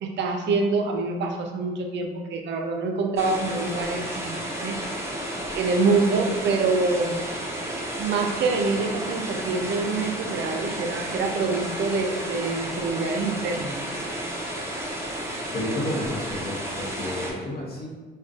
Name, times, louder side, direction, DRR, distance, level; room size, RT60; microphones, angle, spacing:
voice 1, 0.0-4.8 5.5-7.2 8.0-13.9, right 3 dB, 65° right, 3 dB, 0.4 m, -26 dB
sound 1, 3.2-17.3, right 1 dB, 15° right, 0.5 m, -32 dB
voice 2, 15.5-17.9, left 1 dB, 50° left, -3 dB, 0.8 m, -31 dB
2.4 x 2.2 x 2.4 m, 1.4 s
cardioid pair, 90°, 20 cm